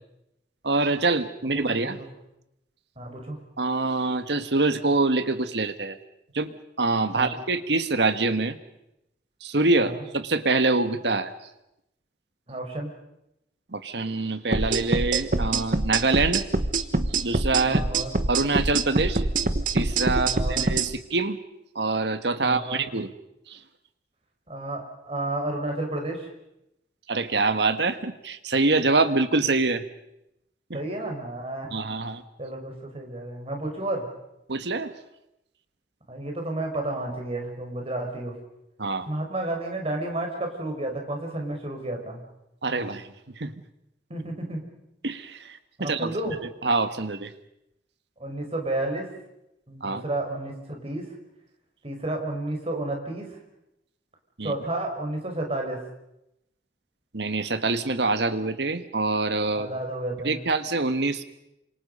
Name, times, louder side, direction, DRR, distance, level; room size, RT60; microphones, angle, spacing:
voice 1, 0.6-2.0 3.6-6.0 6.3-8.5 9.4-11.3 13.7-16.4 17.2-17.8 18.3-19.2 19.7-21.4 21.7-23.1 23.5-23.6 27.1-29.8 30.7-30.8 31.7-32.2 34.5-34.9 38.8-39.1 42.6-43.1 43.4-43.5 45.0-47.3 49.8-50.0 54.4-54.5 57.1-59.7 60.2-61.2, right 3 dB, 75° right, 11 dB, 1.5 m, -25 dB
voice 2, 1.6-2.1 3.0-3.4 7.1-7.3 9.8-10.0 12.5-12.9 17.6-18.2 20.1-20.7 22.4-22.8 24.5-26.3 30.7-31.7 32.4-34.1 36.1-38.4 39.1-42.2 44.1-44.6 45.8-46.4 48.2-49.1 49.7-51.1 51.8-53.4 54.4-55.8 59.5-60.4, right 1 dB, 35° right, 2 dB, 5.2 m, -31 dB
sound 1, 14.5-20.9, right 3 dB, 50° right, 1.3 m, -24 dB
28.0 x 26.0 x 5.5 m, 0.86 s
head